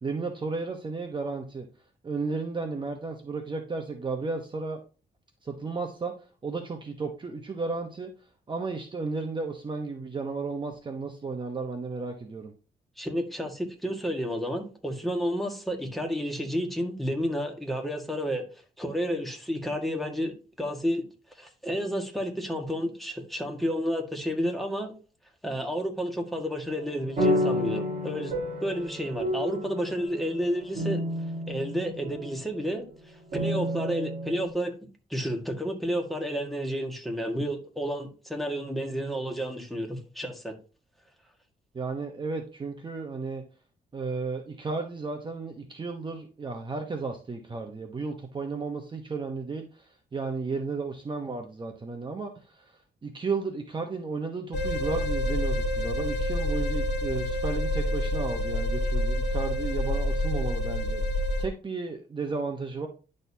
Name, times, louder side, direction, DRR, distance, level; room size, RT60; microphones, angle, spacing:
voice 1, 0.0-1.7 2.0-4.8 5.4-6.1 6.4-8.1 8.5-12.5 41.7-43.4 43.9-61.0 61.4-62.9, right 4 dB, 25° right, 1.0 m, -33 dB
voice 2, 13.0-18.4 18.8-21.0 21.4-24.9 25.4-28.3 28.6-31.0 31.5-32.8 33.3-34.7 35.1-40.5, equal, ahead, 1.7 m, -31 dB
sound 1, 26.7-32.7 33.3-34.5, equal, 45° right, 4.4 m, -30 dB
sound 2, 54.5-61.5, left 1 dB, 70° left, 1.3 m, -28 dB
10.5 x 6.5 x 2.8 m
cardioid pair, 125°, 17 cm